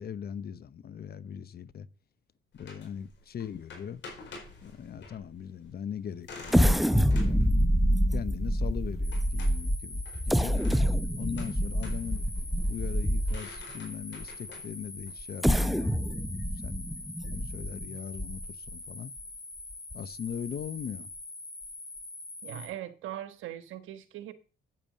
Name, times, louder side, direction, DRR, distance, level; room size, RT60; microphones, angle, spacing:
voice 1, 0.0-1.9 2.6-4.0 4.6-7.4 8.1-10.6 11.2-16.4 16.6-16.9 17.2-19.1 19.9-21.1, left 8 dB, 50° left, 0.8 m, -40 dB
sound 1, 2.5-17.0, left 3 dB, 65° left, 4.7 m, -50 dB
sound 2, 6.5-13.6 14.2-14.3 15.2-18.7 19.2-19.3 19.7-19.9, equal, ahead, 0.7 m, -27 dB
sound 3, 9.0-22.7, left 2 dB, 35° left, 7.5 m, -44 dB
voice 2, 22.4-24.3, right 12 dB, 85° right, 1.3 m, -40 dB
9.0 x 9.0 x 6.4 m
cardioid pair, 90°, 20 cm